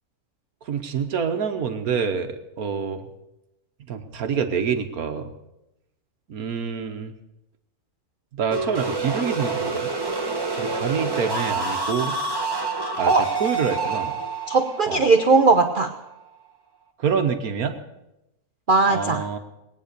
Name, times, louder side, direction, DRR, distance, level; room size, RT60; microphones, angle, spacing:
voice 1, 0.7-3.0 3.9-5.3 6.3-7.1 8.4-9.9 10.6-12.2 13.0-13.1 13.4-14.1 14.9-15.0 17.0-17.7 18.9-19.4, right 6 dB, 70° right, 7 dB, 1.5 m, -26 dB
sound 1, 8.5-16.2, right 3 dB, 15° right, 1.1 m, -28 dB
voice 2, 14.5-15.9 18.7-19.2, right 3 dB, 45° right, 6 dB, 0.8 m, -18 dB
20.0 x 9.4 x 6.7 m, 0.92 s
omnidirectional pair, 1.6 m